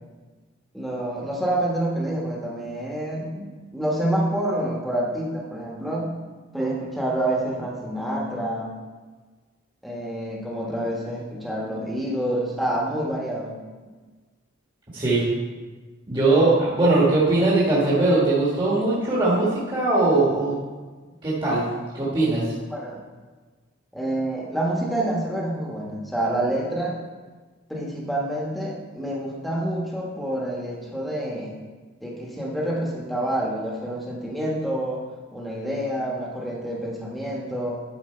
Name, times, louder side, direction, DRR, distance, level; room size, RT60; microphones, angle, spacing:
voice 1, 0.7-6.1 6.5-8.8 9.8-13.6 22.7-23.0 23.9-27.0 27.7-31.5 32.0-35.0 35.3-37.8, right 1 dB, ahead, -3 dB, 1.3 m, -27 dB
voice 2, 14.9-15.2 16.1-20.6 21.2-21.6 21.9-22.5, right 2 dB, 25° right, -8 dB, 1.6 m, -20 dB
11.5 x 4.4 x 4.4 m, 1.4 s
head